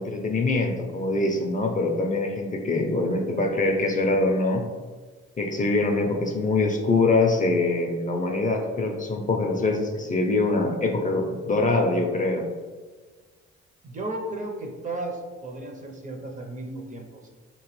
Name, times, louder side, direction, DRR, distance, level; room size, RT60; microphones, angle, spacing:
voice 1, 0.0-4.7 5.4-12.5, left 2 dB, 25° left, 2 dB, 0.4 m, -24 dB
voice 2, 13.8-17.3, right 2 dB, 25° right, 3 dB, 0.5 m, -34 dB
3.3 x 2.9 x 3.0 m, 1.4 s
cardioid pair, 90°, 30 cm